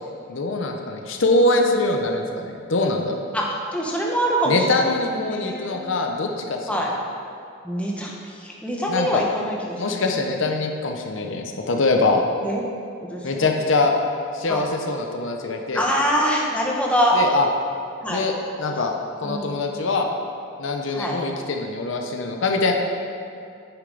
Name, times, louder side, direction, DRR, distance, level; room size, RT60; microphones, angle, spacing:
voice 1, 0.3-3.2 4.5-6.7 8.9-9.2 9.8-12.3 13.2-13.9 14.3-15.9 17.1-17.5 18.1-18.3 18.6-18.9 19.2-20.1 20.6-22.7, left 3 dB, 65° left, 3 dB, 0.7 m, -23 dB
voice 2, 3.3-5.8 6.7-6.9 7.6-10.0 12.4-12.6 13.1-13.5 14.5-14.7 15.7-17.2 18.0-18.2 19.2-19.6 20.9-21.2 22.7-22.8, equal, 5° left, -3 dB, 0.9 m, -25 dB
9.0 x 6.6 x 3.9 m, 2.5 s
head